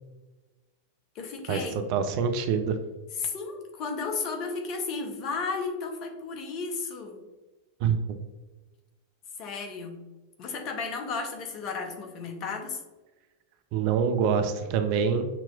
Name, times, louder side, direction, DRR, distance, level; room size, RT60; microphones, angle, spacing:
voice 1, 1.1-1.8 3.2-7.2 9.4-10.0 10.4-12.8, left 4 dB, 40° left, 3 dB, 0.7 m, -33 dB
voice 2, 1.9-2.8 7.8-8.2 13.7-15.3, right 6 dB, 45° right, 8 dB, 0.4 m, -25 dB
5.9 x 2.9 x 2.3 m, 1.2 s
figure-of-eight pair, 90°, 0 cm